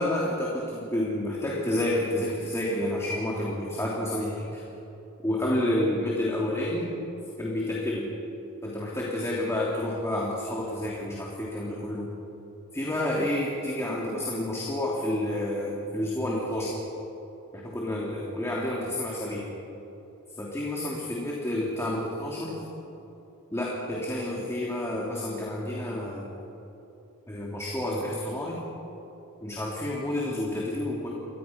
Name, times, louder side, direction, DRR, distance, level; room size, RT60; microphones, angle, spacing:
voice 1, 0.0-4.6 5.2-6.9 7.4-8.1 8.6-12.1 12.7-16.8 17.5-19.5 20.4-22.6 23.5-26.3 27.3-28.6 29.4-31.1, left 1 dB, 10° left, -4 dB, 3.2 m, -29 dB
29.5 x 24.0 x 6.0 m, 3.0 s
head